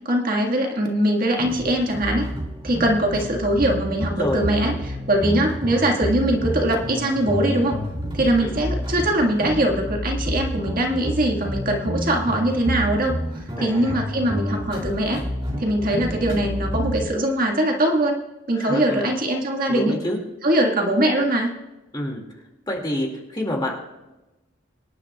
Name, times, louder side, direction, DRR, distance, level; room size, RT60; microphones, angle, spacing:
voice 1, 0.1-2.3 2.6-7.8 8.1-13.2 13.6-15.2 15.6-18.2 18.5-19.9 20.4-21.5, right 1 dB, 45° right, 1 dB, 1.7 m, -22 dB
sound 1, 1.4-17.1, equal, 25° right, 2.2 m, -29 dB
voice 2, 4.2-4.8 8.4-8.6 13.6-13.9 18.5-19.1 19.7-20.2 21.9-22.2 22.7-23.8, left 1 dB, 20° left, 0 dB, 2.2 m, -28 dB
24.5 x 10.5 x 2.3 m, 1.0 s
head